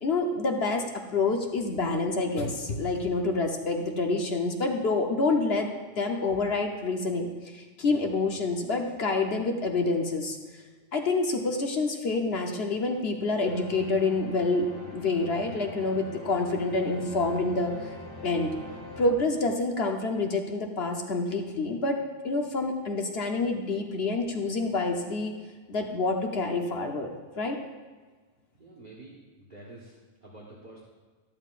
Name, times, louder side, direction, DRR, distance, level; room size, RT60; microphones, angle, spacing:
voice 1, 0.0-5.7 6.0-10.4 10.9-17.9 18.2-18.5 19.0-25.3 25.7-27.1 27.4-27.6, left 3 dB, 55° left, 3 dB, 1.1 m, -27 dB
sound 1, 13.4-19.1, left 1 dB, 20° left, 1.8 m, -42 dB
voice 2, 28.5-29.9 30.2-30.8, right 2 dB, 40° right, -5 dB, 1.5 m, -48 dB
13.0 x 12.0 x 2.5 m, 1.4 s
omnidirectional pair, 1.3 m